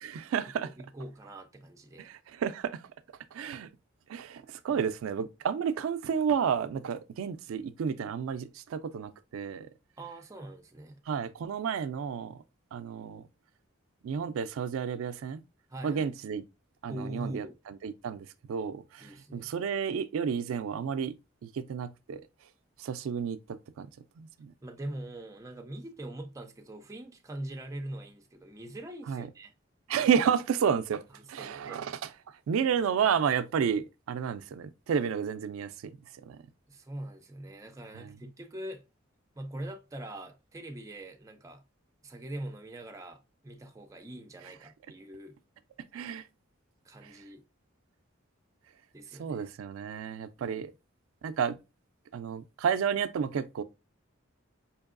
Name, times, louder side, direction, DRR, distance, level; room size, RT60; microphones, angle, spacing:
voice 1, 0.0-0.7 2.0-2.8 3.3-3.7 4.1-9.7 11.1-12.4 12.7-13.2 14.0-15.4 15.8-16.4 16.8-21.1 21.4-22.2 22.8-23.4 23.8-23.9 24.2-24.5 29.1-29.2 29.9-31.0 31.3-32.0 32.5-35.7 36.3-36.4 37.9-38.1 45.9-46.2 49.2-50.7 51.2-51.6 52.1-53.6, right 7 dB, 90° right, 0.3 m, -31 dB
voice 2, 0.6-2.1 4.7-4.9 10.0-11.0 15.7-16.1 16.9-17.6 19.0-19.6 24.6-29.5 31.1-31.8 36.7-38.8 39.4-41.6 42.0-45.4 46.8-47.4 48.9-49.5, right 1 dB, 15° right, 0.4 m, -42 dB
4.5 x 2.8 x 2.4 m
head